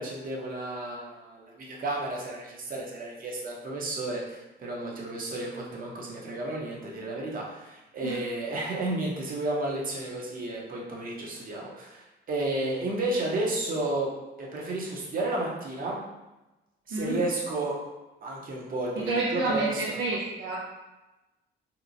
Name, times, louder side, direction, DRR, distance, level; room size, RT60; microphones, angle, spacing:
voice 1, 0.0-14.1 14.4-16.0 16.9-17.8 18.2-20.0, right 2 dB, 45° right, -2 dB, 0.7 m, -32 dB
voice 2, 16.9-17.2 19.0-20.6, right 2 dB, 80° right, -5 dB, 0.5 m, -29 dB
2.9 x 2.0 x 2.5 m, 1.0 s
cardioid pair, 90°, 20 cm